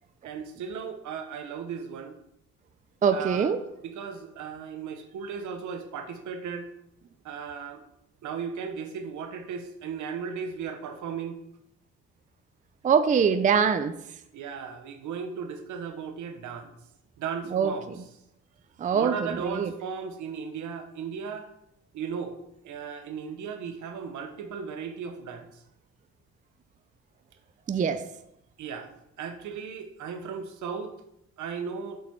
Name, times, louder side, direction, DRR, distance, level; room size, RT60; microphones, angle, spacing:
voice 1, 0.2-2.2 3.1-3.5 3.8-6.7 7.2-7.8 8.2-11.4 14.3-16.7 17.2-17.9 18.9-21.5 21.9-25.5 28.6-28.9 29.2-30.9 31.4-32.0, right 6 dB, 75° right, 7 dB, 1.0 m, -36 dB
voice 2, 3.0-3.6 12.8-13.9 17.5-18.0 18.8-19.7 27.7-28.0, right 6 dB, 25° right, 10 dB, 0.4 m, -24 dB
6.6 x 4.1 x 4.6 m, 0.79 s
cardioid pair, 90°, 30 cm